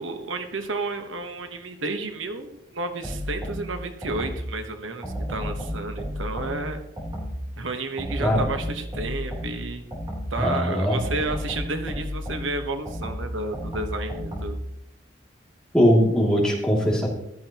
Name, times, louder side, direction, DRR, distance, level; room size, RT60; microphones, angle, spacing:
voice 1, 0.0-6.8 7.6-9.8 10.3-14.6, right 2 dB, 85° right, 6 dB, 1.3 m, -31 dB
sound 1, 3.0-4.6 5.0-7.5 8.0-10.5 10.9-14.7, equal, 20° right, 3.6 m, -32 dB
voice 2, 10.4-10.9 15.7-17.1, equal, 5° left, -3 dB, 2.6 m, -20 dB
15.0 x 12.0 x 3.0 m, 0.83 s
head